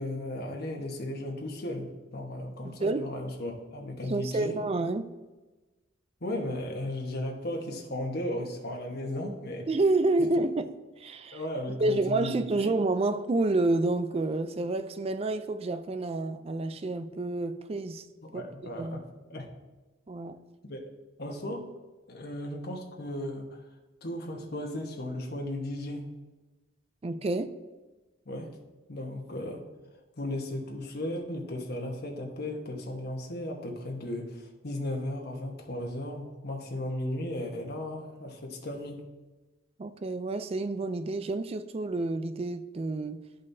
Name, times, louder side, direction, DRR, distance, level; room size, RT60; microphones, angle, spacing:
voice 1, 0.0-4.6 6.2-9.7 11.3-12.7 18.2-19.5 20.6-20.9 21.2-21.7 22.1-23.6 24.0-26.0 28.2-28.5 28.9-29.6 30.2-39.0, left 1 dB, 55° left, 1.2 m, -35 dB
voice 2, 2.6-3.1 4.0-5.1 9.7-11.4 11.7-18.1 18.3-18.4 18.8-19.0 20.1-20.4 27.0-27.5 39.8-43.3, right 2 dB, 30° right, 0.4 m, -29 dB
11.5 x 5.3 x 2.7 m
head